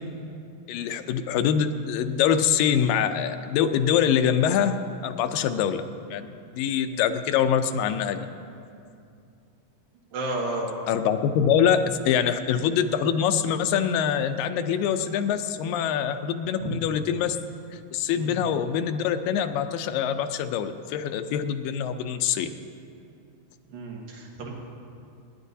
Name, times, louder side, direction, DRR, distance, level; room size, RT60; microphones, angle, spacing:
voice 1, 0.7-4.8 5.0-5.8 6.1-6.3 6.5-8.2 10.9-17.4 17.9-22.5, left 8 dB, 80° left, 8 dB, 2.3 m, -24 dB
voice 2, 10.1-10.7 16.6-16.7 18.1-18.3 23.7-24.6, right 2 dB, 85° right, -2 dB, 3.6 m, -32 dB
27.5 x 10.5 x 2.7 m, 2.5 s
omnidirectional pair, 4.0 m